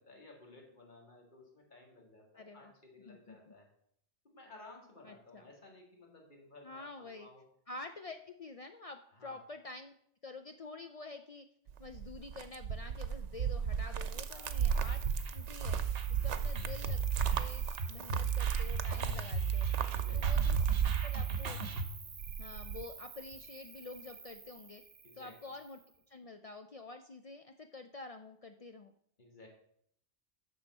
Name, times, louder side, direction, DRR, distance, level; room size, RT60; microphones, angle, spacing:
voice 1, 0.0-3.7 4.2-7.4 9.1-9.4 14.3-14.6 16.2-16.4 19.9-20.2 25.0-25.3 29.2-29.5, left 2 dB, 40° left, 0 dB, 2.0 m, -56 dB
voice 2, 2.4-2.7 3.0-3.5 5.0-5.5 6.6-7.3 7.7-9.9 10.2-11.5 11.8-15.1 15.3-15.8 16.1-17.1 17.3-19.7 20.1-21.6 22.4-24.8 25.1-25.8 26.1-28.9, left 3 dB, 60° left, 6 dB, 0.3 m, -48 dB
sound 1, 11.7-21.6 21.9-22.8, right 7 dB, 85° right, 1.0 m, -35 dB
Cricket, 14.0-26.0, right 5 dB, 35° right, 0.7 m, -50 dB
sound 2, 14.9-21.8, right 7 dB, 60° right, 1.0 m, -35 dB
7.0 x 6.4 x 5.4 m, 0.68 s
omnidirectional pair, 1.2 m